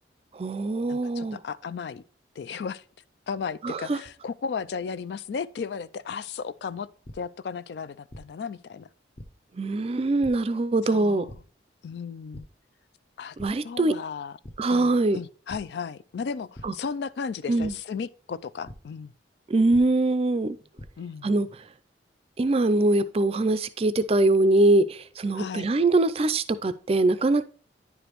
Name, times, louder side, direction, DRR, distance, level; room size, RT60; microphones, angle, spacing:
voice 1, 0.3-1.4 3.6-4.0 9.5-11.2 13.4-13.9 14.6-15.2 16.6-16.7 17.5-17.8 19.5-20.6 21.2-21.5 22.4-27.5, right 2 dB, 35° right, 0.4 m, -23 dB
voice 2, 0.9-2.0 2.4-2.8 3.3-6.9 7.1-8.9 10.8-11.4 11.8-12.5 13.2-13.4 13.6-14.4 14.7-19.1 21.0-21.4 25.3-25.7, left 6 dB, 65° left, 0.3 m, -35 dB
sound 1, 7.0-7.1 8.1-8.2 9.2-9.3 10.2-10.3 11.3-11.4 12.3-12.4 12.9-13.1 13.4-13.5 14.4-14.5 15.5-15.6 16.5-16.6 17.6-17.7 18.7-18.8 19.7-19.8 20.5-20.9, left 1 dB, 30° left, 0.7 m, -42 dB
9.8 x 5.0 x 3.0 m
head